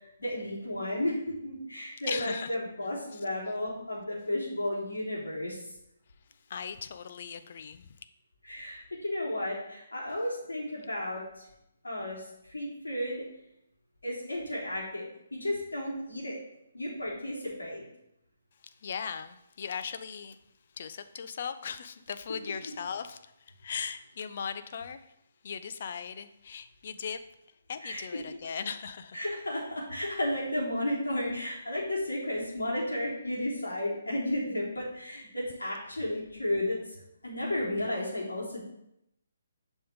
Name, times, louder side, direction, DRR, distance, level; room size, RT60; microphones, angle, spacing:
voice 1, 0.2-1.2 1.4-5.6 8.4-11.2 11.8-12.2 12.5-13.2 14.0-16.4 16.7-17.8 27.8-28.0 29.1-36.8 37.2-38.6, left 1 dB, 75° left, -5 dB, 3.5 m, -33 dB
voice 2, 2.1-2.6 3.1-3.2 6.5-7.9 18.8-20.4 20.8-23.3 23.6-25.0 25.4-27.2 27.7-29.2, left 6 dB, 45° left, 10 dB, 0.6 m, -38 dB
7.6 x 5.4 x 5.3 m, 0.81 s
figure-of-eight pair, 135°, 0 cm